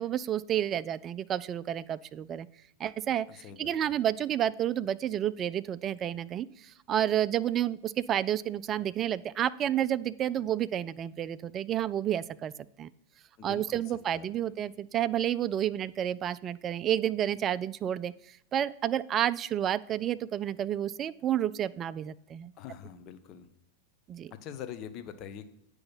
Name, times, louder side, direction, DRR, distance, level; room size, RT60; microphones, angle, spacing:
voice 1, 0.0-2.5 2.8-12.5 12.8-12.9 13.4-18.1 18.5-22.5 24.1-24.3, right 11 dB, 30° right, 17 dB, 0.3 m, -30 dB
voice 2, 3.3-4.0 13.4-14.3 22.6-23.5 24.3-25.5, left 9 dB, 40° left, 9 dB, 0.7 m, -44 dB
8.7 x 4.8 x 5.6 m, 0.74 s
figure-of-eight pair, 95°, 0 cm